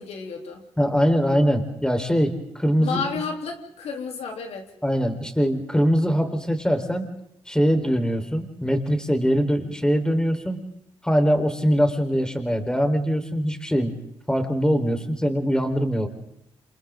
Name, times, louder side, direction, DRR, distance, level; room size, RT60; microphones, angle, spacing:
voice 1, 0.0-0.6 2.8-4.7, left 5 dB, 70° left, 2 dB, 3.6 m, -31 dB
voice 2, 0.8-3.2 4.8-7.1 7.5-10.6 11.0-13.9 14.3-16.1, equal, 5° left, 5 dB, 4.4 m, -22 dB
29.0 x 27.5 x 3.9 m, 0.75 s
supercardioid pair, 55°, 11 cm